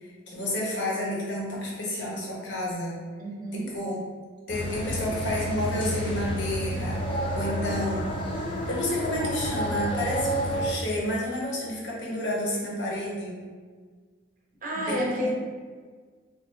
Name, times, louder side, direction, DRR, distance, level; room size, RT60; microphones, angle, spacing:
voice 1, 0.0-3.0 3.5-4.0 4.5-8.1 8.7-13.4 14.7-15.3, left 1 dB, 65° left, -4 dB, 0.9 m, -30 dB
voice 2, 3.2-3.7 4.9-5.0 14.6-15.3, equal, 40° right, -2 dB, 0.6 m, -30 dB
sound 1, 4.5-10.7, right 1 dB, 25° left, 0.3 m, -30 dB
2.7 x 2.5 x 3.5 m, 1.5 s
head